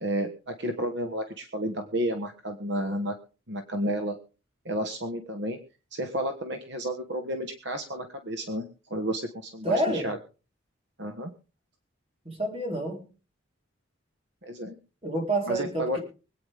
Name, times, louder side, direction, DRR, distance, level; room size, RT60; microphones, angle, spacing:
voice 1, 0.0-3.1 3.5-4.2 4.6-5.6 5.9-10.2 11.0-11.3 14.4-14.8 15.5-16.0, right 1 dB, 55° right, 5 dB, 1.3 m, -31 dB
voice 2, 9.6-10.1 12.2-13.1 15.0-16.0, right 1 dB, 30° right, 1 dB, 4.1 m, -28 dB
24.5 x 9.2 x 3.6 m, 0.34 s
head